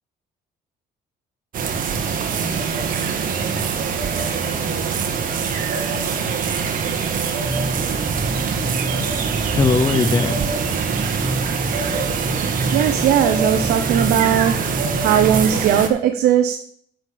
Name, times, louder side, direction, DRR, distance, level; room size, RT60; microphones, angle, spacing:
sound 1, 1.5-15.9, right 6 dB, 55° right, 1.5 m, -24 dB
sound 2, 7.4-15.6, right 2 dB, 10° right, 0.7 m, -27 dB
voice 1, 9.6-10.4, left 5 dB, 25° left, 11 dB, 0.6 m, -24 dB
voice 2, 12.4-16.6, right 10 dB, 75° right, 6 dB, 0.9 m, -19 dB
9.7 x 5.2 x 6.9 m, 0.62 s
cardioid pair, 110°, 17 cm